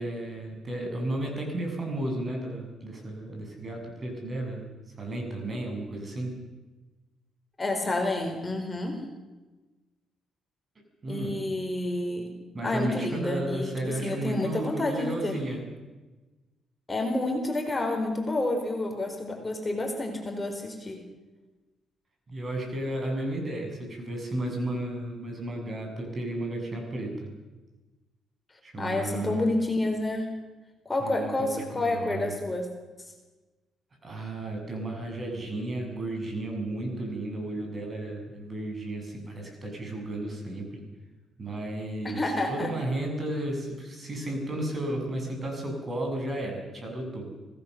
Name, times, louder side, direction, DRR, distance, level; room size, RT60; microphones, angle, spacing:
voice 1, 0.0-6.3 11.0-11.3 12.5-15.6 22.3-27.3 28.6-29.4 31.0-32.3 34.0-40.8 41.4-47.3, right 1 dB, 35° right, 2 dB, 7.7 m, -33 dB
voice 2, 7.6-9.0 11.1-12.3 12.6-15.4 16.9-21.0 28.8-30.4 30.8-32.7 33.0-33.1 42.0-42.7, left 2 dB, 20° left, 3 dB, 4.6 m, -29 dB
26.0 x 18.0 x 6.9 m, 1.2 s
cardioid pair, 90°, 0 cm